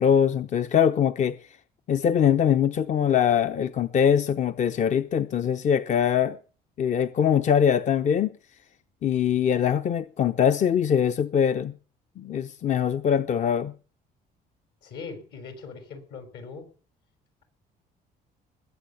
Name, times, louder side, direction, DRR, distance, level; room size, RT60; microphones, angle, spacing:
voice 1, 0.0-1.6 1.9-6.4 6.8-8.3 9.0-11.7 12.2-13.7, left 8 dB, 45° left, 0.7 m, -22 dB
voice 2, 14.8-16.7, left 5 dB, 80° left, 5.7 m, -40 dB
21.0 x 8.5 x 7.0 m
cardioid pair, 110°, 17 cm